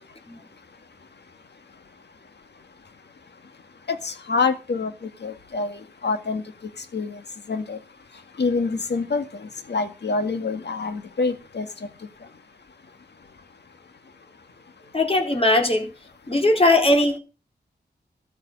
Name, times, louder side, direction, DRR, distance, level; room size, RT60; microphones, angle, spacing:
voice 1, 4.0-4.9 5.2-5.7 6.0-6.4 6.9-7.1 7.5-7.8 8.4-9.2 9.7-11.7, left 4 dB, 65° left, 8 dB, 1.9 m, -25 dB
voice 2, 14.9-15.9 16.3-17.2, left 2 dB, 30° left, 2 dB, 3.7 m, -19 dB
14.0 x 6.6 x 8.1 m, 0.33 s
cardioid pair, 55°, 19 cm